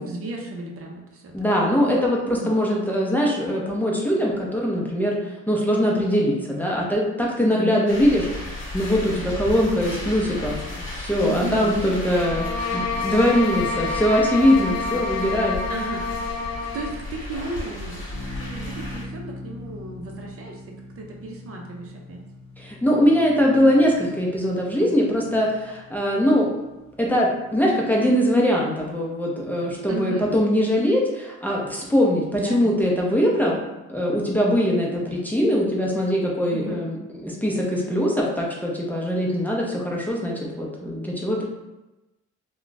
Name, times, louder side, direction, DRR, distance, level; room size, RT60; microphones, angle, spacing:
voice 1, 0.0-1.8 2.4-2.7 7.3-7.7 11.2-11.7 15.7-16.3 16.7-22.2 29.9-30.3 32.3-32.7 36.5-36.8, right 3 dB, 50° right, 0 dB, 0.6 m, -34 dB
voice 2, 1.3-10.6 10.9-15.6 22.6-26.5 27.0-33.6 33.9-41.4, equal, 5° left, -3 dB, 0.6 m, -22 dB
sound 1, 7.9-19.0, left 2 dB, 40° left, 1.1 m, -34 dB
sound 2, 12.1-17.0, left 4 dB, 60° left, 0.5 m, -28 dB
sound 3, 18.1-28.6, left 1 dB, 25° left, 0.9 m, -42 dB
2.3 x 2.3 x 3.9 m, 1.0 s
cardioid pair, 90°, 30 cm